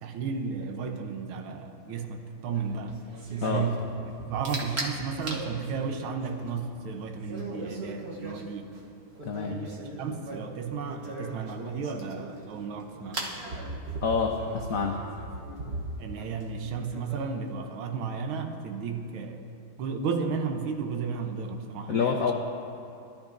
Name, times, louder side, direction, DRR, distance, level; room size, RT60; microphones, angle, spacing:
voice 1, 0.0-3.0 3.3-8.7 9.5-13.2 16.0-19.5 19.8-22.3, right 5 dB, 90° right, 6 dB, 1.6 m, -33 dB
sound 1, 2.5-17.5, right 2 dB, 40° right, 1.0 m, -39 dB
voice 2, 9.3-9.6 14.0-15.0 21.9-22.3, left 5 dB, 85° left, 2 dB, 0.7 m, -27 dB
15.5 x 11.5 x 2.5 m, 2.6 s
omnidirectional pair, 2.2 m